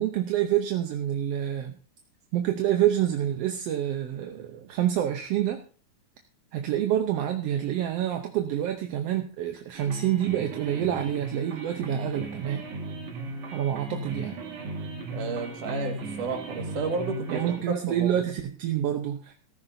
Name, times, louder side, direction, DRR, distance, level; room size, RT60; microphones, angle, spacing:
voice 1, 0.0-1.8 2.3-5.6 6.5-12.6 13.5-14.4 17.3-19.3, right 11 dB, 70° right, 5 dB, 1.6 m, -27 dB
sound 1, 9.7-17.6, right 2 dB, 50° right, 2.7 m, -37 dB
voice 2, 15.1-18.2, right 4 dB, 85° right, 4 dB, 3.4 m, -32 dB
16.0 x 14.0 x 2.7 m, 0.40 s
omnidirectional pair, 3.5 m